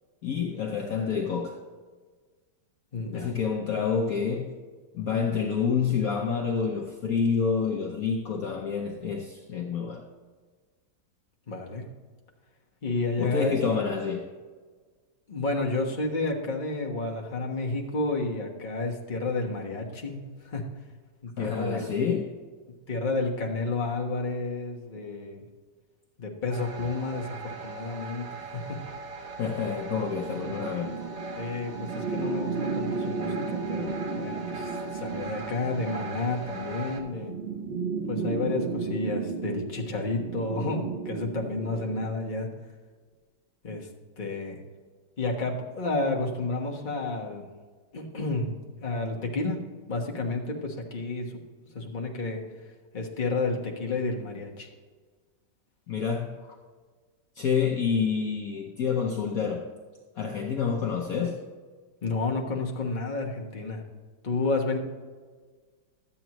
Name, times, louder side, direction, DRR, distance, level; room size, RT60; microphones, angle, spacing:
voice 1, 0.2-1.6 3.1-4.6 4.9-10.1 13.2-14.3 21.4-22.4 29.4-31.0 55.9-56.6 57.4-59.7 60.2-61.4, left 6 dB, 60° left, 1.1 m, -28 dB
voice 2, 2.9-3.3 11.5-11.8 12.8-13.8 15.3-20.6 21.2-22.0 22.7-25.4 26.2-28.6 31.4-37.3 38.1-42.5 43.6-43.9 44.2-44.6 45.2-47.4 47.9-48.6 48.8-49.6 49.9-51.4 51.7-52.4 52.9-54.7 62.0-63.8 64.2-64.8, left 3 dB, 30° left, 1.2 m, -31 dB
sound 1, 26.5-37.0, right 3 dB, 55° right, 1.3 m, -40 dB
sound 2, 29.8-42.2, right 4 dB, 75° right, 0.5 m, -34 dB
12.5 x 8.5 x 3.0 m
omnidirectional pair, 1.9 m